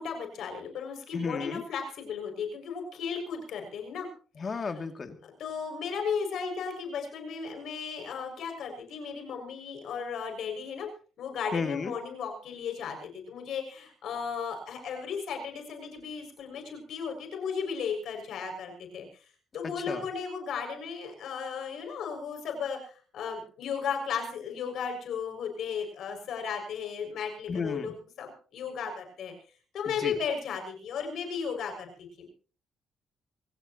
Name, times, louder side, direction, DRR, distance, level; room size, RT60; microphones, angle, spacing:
voice 1, 0.0-4.1 5.2-10.9 11.2-19.1 19.5-29.3 29.7-31.9 32.2-32.3, left 6 dB, 70° left, 4 dB, 6.4 m, -35 dB
voice 2, 1.1-1.6 4.4-5.2 11.5-11.9 19.6-20.1 27.5-27.9 29.9-30.1, left 4 dB, 40° left, 6 dB, 2.5 m, -33 dB
25.5 x 16.0 x 3.0 m, 0.40 s
cardioid pair, 90°, 0 cm